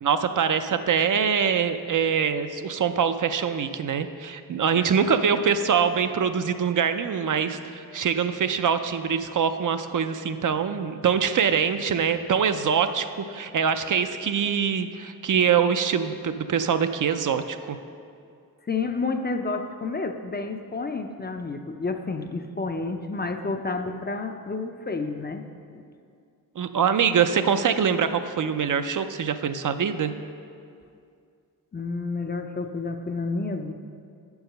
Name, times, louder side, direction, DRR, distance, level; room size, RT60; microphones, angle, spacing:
voice 1, 0.0-17.8 26.6-30.1, right 7 dB, 60° right, 9 dB, 0.4 m, -24 dB
voice 2, 18.7-25.4 25.7-25.8 31.7-33.7, left 3 dB, 30° left, 6 dB, 0.4 m, -30 dB
7.5 x 4.7 x 6.5 m, 2.4 s
wide cardioid pair, 80°, 36 cm